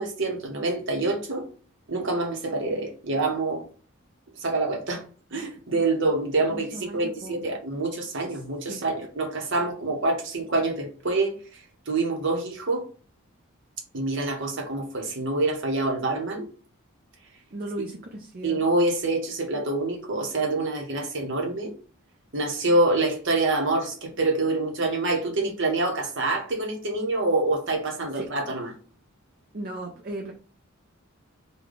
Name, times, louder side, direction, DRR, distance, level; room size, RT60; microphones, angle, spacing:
voice 1, 0.0-1.5 1.9-3.6 4.4-5.0 5.3-11.3 11.9-12.8 13.9-16.5 18.4-21.8 22.3-28.7, right 2 dB, 60° right, 0.9 m, -26 dB
voice 2, 6.5-7.4 8.3-8.4 8.7-8.8 17.5-18.7 28.1-28.3 29.5-30.3, right 1 dB, 45° right, 0.5 m, -36 dB
3.4 x 2.3 x 3.7 m
head